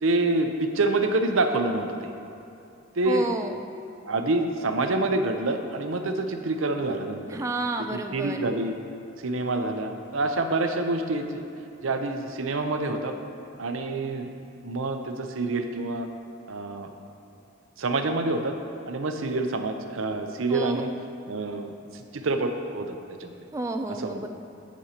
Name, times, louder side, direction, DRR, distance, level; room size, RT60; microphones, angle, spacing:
voice 1, 0.0-2.1 2.9-3.2 4.1-7.4 7.8-8.8 9.2-11.4 11.8-13.1 13.6-14.3 14.6-16.1 16.5-16.9 17.8-18.6 18.9-20.9 21.3-23.4 24.0-24.3, right 2 dB, 85° right, 5 dB, 0.7 m, -27 dB
voice 2, 3.0-3.7 7.3-8.5 20.5-20.8 23.5-24.3, right 2 dB, 15° right, 4 dB, 0.3 m, -30 dB
16.5 x 6.3 x 2.9 m, 2.7 s
head